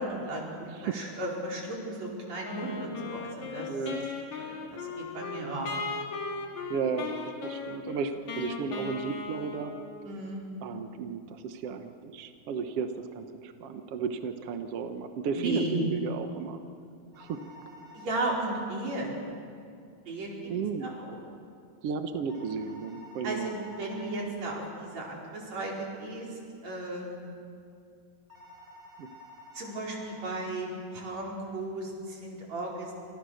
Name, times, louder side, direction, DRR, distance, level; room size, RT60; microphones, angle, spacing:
voice 1, 0.0-3.7 4.4-5.7 10.0-10.4 15.3-15.8 17.9-19.1 20.1-20.5 20.8-21.2 23.2-27.1 29.5-32.9, right 2 dB, 50° right, -2 dB, 5.7 m, -35 dB
Wind instrument woodwind instrument, 2.4-10.1, left 4 dB, 55° left, 3.3 m, -37 dB
voice 2, 3.7-4.1 6.7-7.2 7.4-9.7 10.6-16.6 17.2-17.4 20.5-20.9 21.8-23.5 29.0-29.1, right 5 dB, 65° right, 7 dB, 1.5 m, -34 dB
sound 1, 17.1-18.3 22.3-24.3 28.3-30.3, left 2 dB, 10° right, 4.6 m, -51 dB
29.0 x 27.0 x 6.6 m, 2.4 s
omnidirectional pair, 4.2 m